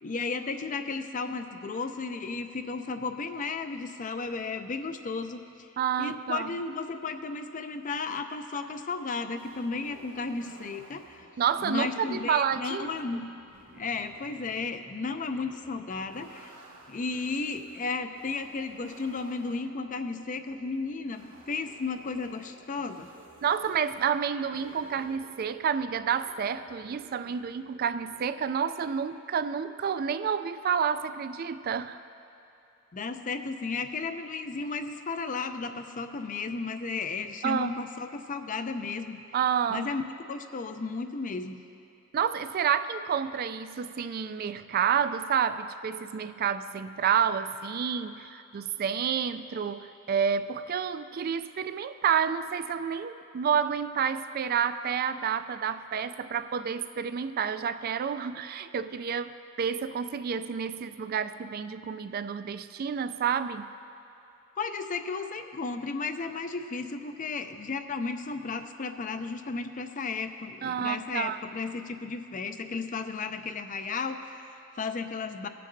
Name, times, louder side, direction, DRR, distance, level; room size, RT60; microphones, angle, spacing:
voice 1, 0.0-5.4 6.0-11.3 11.6-13.3 13.8-16.5 16.9-23.1 32.9-39.2 39.7-40.0 40.3-41.6 64.6-75.5, left 4 dB, 40° left, 9 dB, 0.5 m, -34 dB
voice 2, 5.8-6.5 11.4-12.9 23.4-32.0 37.4-37.7 39.3-39.9 42.1-63.6 70.6-71.4, right 7 dB, 45° right, 12 dB, 0.3 m, -29 dB
sound 1, 9.4-28.2, right 1 dB, 70° right, 1.4 m, -55 dB
19.0 x 7.6 x 2.7 m, 2.7 s
head